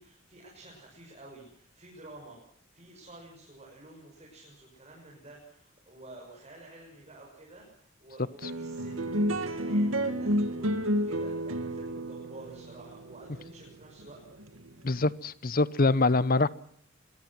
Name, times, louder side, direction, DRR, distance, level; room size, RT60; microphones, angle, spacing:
voice 1, 0.0-2.4 2.7-14.2, right 2 dB, 30° right, -3 dB, 7.0 m, -50 dB
sound 1, 8.4-15.1, equal, 80° right, 2.2 m, -31 dB
voice 2, 14.8-16.5, left 3 dB, 45° left, 17 dB, 0.8 m, -24 dB
25.5 x 21.5 x 6.0 m, 0.67 s
head